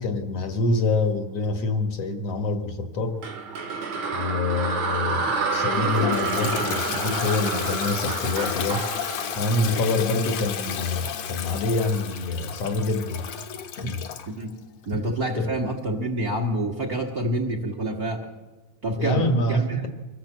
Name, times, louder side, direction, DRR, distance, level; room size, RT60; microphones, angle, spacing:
voice 1, 0.0-3.3 4.1-8.9 9.4-13.2 13.8-14.0 15.4-15.5 19.0-19.9, left 2 dB, 60° left, 5 dB, 2.3 m, -26 dB
sound 1, 3.2-10.4, right 4 dB, 65° right, 3.1 m, -29 dB
Toilet flush, 5.7-14.3, left 9 dB, 85° left, 2.7 m, -32 dB
voice 2, 14.9-18.3 18.8-19.9, right 1 dB, 35° right, 5 dB, 2.1 m, -27 dB
25.0 x 17.0 x 7.5 m, 1.3 s
omnidirectional pair, 3.5 m